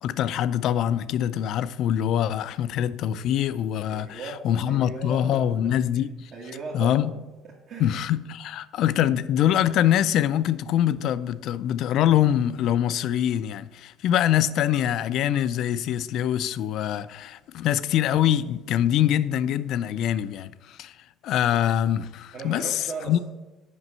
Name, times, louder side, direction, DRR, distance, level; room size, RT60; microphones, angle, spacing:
voice 1, 0.0-6.3 6.7-7.1 7.8-20.9 21.2-23.2, left 11 dB, 65° left, 0.4 m, -24 dB
voice 2, 3.9-6.0 6.3-7.2 7.5-7.9 22.3-23.2, right 4 dB, 50° right, 1.4 m, -38 dB
8.1 x 5.2 x 5.5 m
cardioid pair, 105°, 0 cm